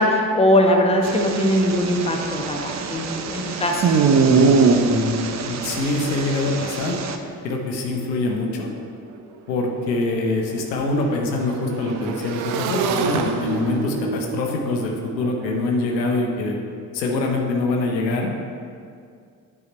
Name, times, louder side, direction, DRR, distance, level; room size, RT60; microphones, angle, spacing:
voice 1, 0.0-3.8, left 1 dB, 10° left, 2 dB, 1.0 m, -20 dB
sound 1, 1.0-7.2, right 5 dB, 35° right, 0.7 m, -22 dB
voice 2, 4.3-7.0 7.4-8.7 9.5-16.6 16.9-18.3, left 2 dB, 80° left, 1 dB, 0.9 m, -24 dB
Motorcycle / Engine, 8.7-8.8 9.0-16.2, right 5 dB, 70° right, 0.7 m, -30 dB
9.4 x 4.8 x 4.2 m, 2.3 s
figure-of-eight pair, 45°, 50 cm